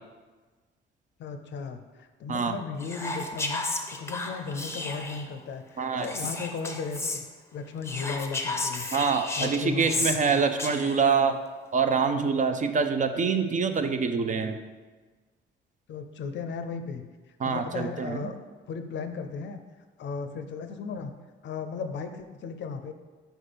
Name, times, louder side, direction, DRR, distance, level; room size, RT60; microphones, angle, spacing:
voice 1, 1.2-3.6 3.9-7.2 7.5-8.9 9.4-10.2 15.9-17.1 17.4-18.4 18.7-19.6 20.0-21.1 21.4-22.9, left 5 dB, 65° left, 8 dB, 0.5 m, -36 dB
Whispering, 2.8-5.3 6.0-7.2 7.8-11.1, left 2 dB, 15° left, 0.6 m, -33 dB
voice 2, 8.9-11.4 11.7-14.6 17.4-18.3, right 5 dB, 40° right, 8 dB, 0.5 m, -25 dB
4.5 x 4.3 x 5.1 m, 1.3 s
cardioid pair, 90°, 20 cm